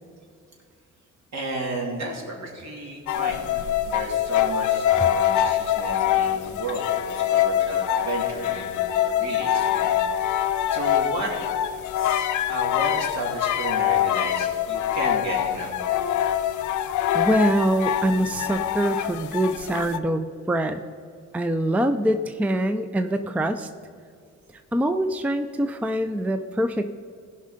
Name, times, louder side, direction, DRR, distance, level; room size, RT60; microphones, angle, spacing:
voice 1, 1.3-9.9 10.7-11.3 12.0-16.0, right 2 dB, 60° right, -1 dB, 3.0 m, -33 dB
sound 1, 3.1-20.0, left 11 dB, 80° left, 0.7 m, -24 dB
voice 2, 17.1-20.8 21.3-23.7 24.7-26.9, right 1 dB, 5° right, 9 dB, 0.5 m, -24 dB
16.0 x 5.5 x 5.1 m, 2.4 s
cardioid pair, 90°, 30 cm